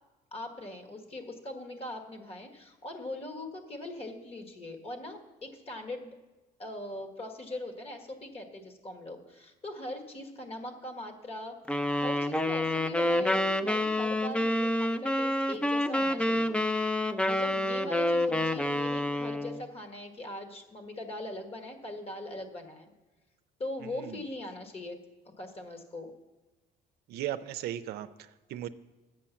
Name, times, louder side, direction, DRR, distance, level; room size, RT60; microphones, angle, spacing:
voice 1, 0.3-6.1 6.6-16.6 17.3-22.9 23.6-25.0 25.4-26.1, left 1 dB, 35° left, 5 dB, 1.6 m, -41 dB
sound 1, 11.7-19.6, left 1 dB, 5° left, 0.4 m, -28 dB
voice 2, 23.8-24.2 27.1-28.7, right 12 dB, 75° right, 11 dB, 0.5 m, -37 dB
9.0 x 7.6 x 7.1 m, 1.2 s
cardioid pair, 110°, 17 cm